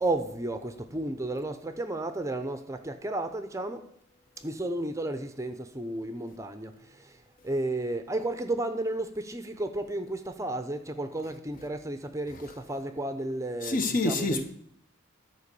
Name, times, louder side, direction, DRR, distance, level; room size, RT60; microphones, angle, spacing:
voice 1, 0.0-3.8 4.4-6.7 7.4-14.4, right 2 dB, 15° right, 0.7 m, -32 dB
voice 2, 13.6-14.4, left 2 dB, 45° left, 1.0 m, -27 dB
12.5 x 4.6 x 6.8 m
head